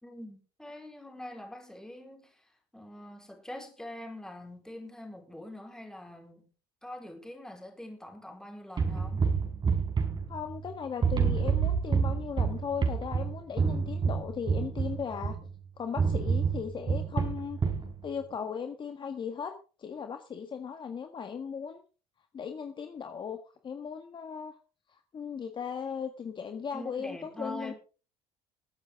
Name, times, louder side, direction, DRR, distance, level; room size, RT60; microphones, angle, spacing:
voice 1, 0.0-6.5 6.8-9.3 26.7-27.7, left 1 dB, 5° left, 4.4 m, -44 dB
sound 1, 8.8-10.7 11.0-15.5 16.0-17.9, right 6 dB, 35° right, 4.5 m, -28 dB
voice 2, 10.3-15.4 15.8-17.6 18.0-19.5 19.8-21.8 22.3-23.4 23.6-24.5 24.9-27.7, left 6 dB, 35° left, 1.6 m, -37 dB
21.5 x 8.8 x 3.7 m
supercardioid pair, 95°, 14 cm